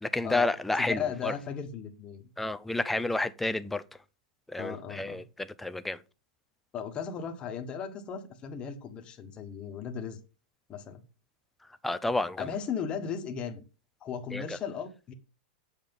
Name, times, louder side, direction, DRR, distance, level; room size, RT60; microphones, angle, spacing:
voice 1, 0.0-1.3 2.4-3.8 4.5-6.0 11.8-12.5 14.3-14.6, left 2 dB, 5° left, 0.4 m, -30 dB
voice 2, 0.8-2.3 4.6-5.2 6.7-10.2 10.7-11.0 12.4-13.6 14.0-15.1, left 7 dB, 20° left, 1.3 m, -36 dB
7.9 x 6.5 x 5.3 m
supercardioid pair, 160°, 5 cm